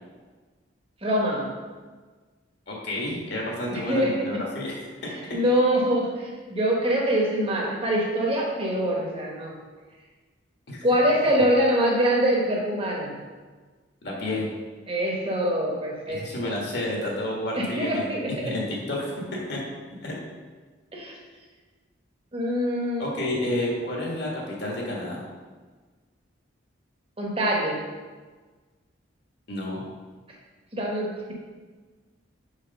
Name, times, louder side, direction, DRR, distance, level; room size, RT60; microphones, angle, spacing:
voice 1, 1.0-1.4 3.7-4.3 5.3-9.5 10.8-13.1 14.9-16.6 17.6-18.6 20.9-21.1 22.3-23.1 27.2-27.8 30.7-31.3, equal, 30° right, -2 dB, 1.2 m, -24 dB
voice 2, 2.7-4.8 5.0-5.3 10.7-10.8 14.0-14.5 16.1-19.6 20.0-20.1 23.0-25.2 29.5-29.8, left 1 dB, 55° left, -3 dB, 1.6 m, -30 dB
5.0 x 4.5 x 5.3 m, 1.4 s
head